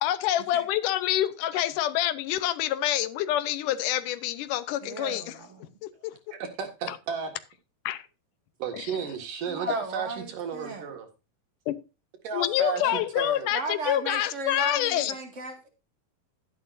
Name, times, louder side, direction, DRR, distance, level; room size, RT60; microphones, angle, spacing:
voice 1, 0.0-5.3 5.8-6.1 6.9-7.0 7.9-8.0 8.7-8.8 11.7-11.8 12.3-15.1, left 13 dB, 80° left, 14 dB, 2.4 m, -27 dB
voice 2, 4.8-5.8 9.4-10.9 12.8-13.0 13.5-15.7, right 3 dB, 25° right, 5 dB, 1.9 m, -36 dB
voice 3, 6.3-7.3 8.6-11.1 12.2-13.5, right 6 dB, 85° right, 5 dB, 3.6 m, -33 dB
11.5 x 11.0 x 2.6 m, 0.29 s
omnidirectional pair, 3.7 m